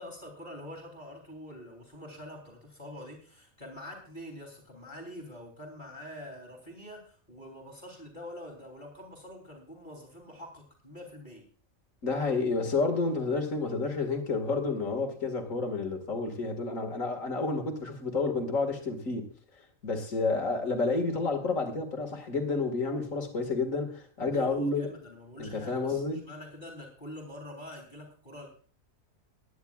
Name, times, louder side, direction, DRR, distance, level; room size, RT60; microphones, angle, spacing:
voice 1, 0.0-11.4 24.3-28.5, left 1 dB, 35° left, 3.4 m, -45 dB
voice 2, 12.0-19.3 19.8-24.9 25.4-26.2, left 3 dB, 75° left, 2.4 m, -30 dB
21.5 x 10.5 x 2.4 m
omnidirectional pair, 1.4 m